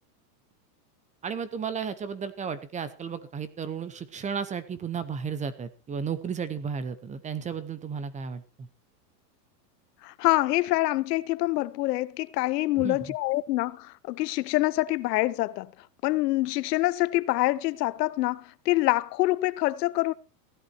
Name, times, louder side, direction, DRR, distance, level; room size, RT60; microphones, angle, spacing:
voice 1, 1.2-8.7 12.8-13.1, right 6 dB, 15° right, 0.8 m, -34 dB
voice 2, 10.0-15.7 16.0-20.1, left 18 dB, 75° left, 0.9 m, -26 dB
15.5 x 11.5 x 4.4 m
supercardioid pair, 150°, 49 cm